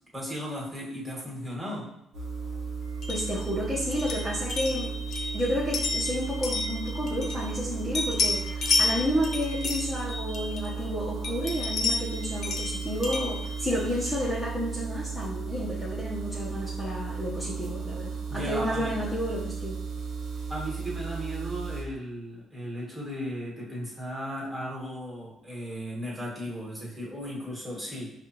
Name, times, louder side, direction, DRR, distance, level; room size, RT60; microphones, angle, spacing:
voice 1, 0.1-1.8 18.3-18.9 20.5-28.1, equal, 15° right, -5 dB, 1.6 m, -36 dB
sound 1, 2.1-21.8, right 5 dB, 65° right, 0.9 m, -35 dB
sound 2, 3.0-7.7 7.9-10.9 11.2-14.3, left 3 dB, 50° left, 0.6 m, -31 dB
voice 2, 3.1-19.8, equal, 5° left, -8 dB, 0.9 m, -31 dB
5.3 x 2.4 x 3.0 m, 0.77 s
cardioid pair, 100°, 0 cm